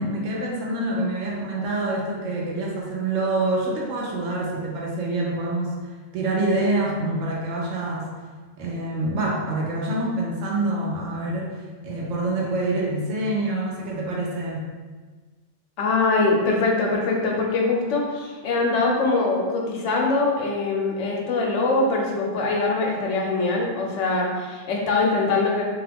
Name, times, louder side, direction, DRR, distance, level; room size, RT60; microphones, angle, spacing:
voice 1, 0.0-5.7 6.1-8.1 8.6-11.6 11.8-14.7, right 2 dB, 85° right, -3 dB, 1.0 m, -26 dB
voice 2, 15.8-25.6, left 3 dB, 75° left, -1 dB, 1.0 m, -23 dB
2.8 x 2.3 x 3.4 m, 1.4 s
omnidirectional pair, 1.3 m